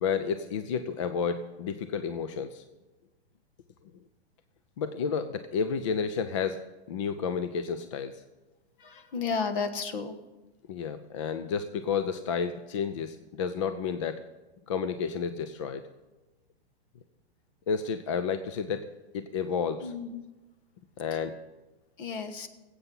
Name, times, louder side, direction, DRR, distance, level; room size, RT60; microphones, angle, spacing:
voice 1, 0.0-2.6 4.8-6.6 6.9-8.2 10.7-14.2 14.7-15.8 17.7-18.9 19.1-19.9 21.0-21.4, left 6 dB, 30° left, 10 dB, 0.4 m, -31 dB
voice 2, 8.8-10.2 19.8-20.2 21.1-21.2 22.0-22.5, left 5 dB, 50° left, 9 dB, 1.4 m, -33 dB
19.0 x 8.2 x 5.5 m, 1.1 s
hypercardioid pair, 160°, 33 cm